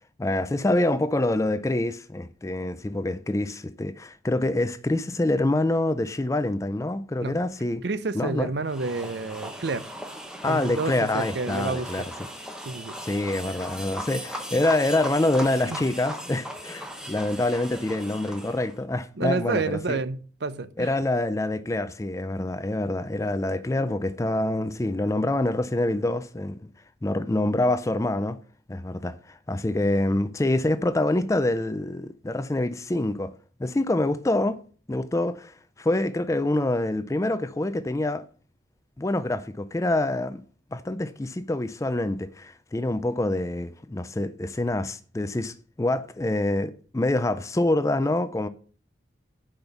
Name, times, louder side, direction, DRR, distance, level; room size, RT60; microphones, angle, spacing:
voice 1, 0.2-7.8 8.1-8.5 10.4-12.1 13.0-20.0 20.8-26.7 27.0-28.4 28.7-33.3 33.6-34.6 34.9-38.2 39.0-40.4 40.7-48.5, left 1 dB, 15° left, 0.4 m, -26 dB
voice 2, 7.8-9.9 10.4-12.1 12.6-13.0 15.7-15.8 19.2-20.9, right 3 dB, 60° right, 0.6 m, -29 dB
sound 1, 8.7-18.8, equal, 5° right, 0.8 m, -38 dB
6.1 x 5.2 x 6.9 m
head